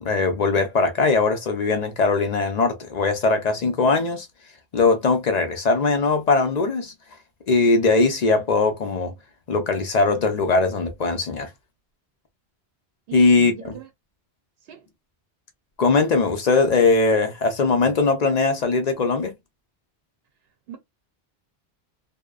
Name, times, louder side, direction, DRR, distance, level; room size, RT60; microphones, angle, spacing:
voice 1, 0.0-4.3 4.7-6.9 7.5-9.1 9.5-11.5 13.1-13.8 15.8-19.3, left 3 dB, 50° left, 0.5 m, -20 dB
voice 2, 13.1-13.9 14.6-14.9 20.7-20.8, right 9 dB, 70° right, 0.8 m, -38 dB
2.7 x 2.0 x 2.3 m
omnidirectional pair, 1.1 m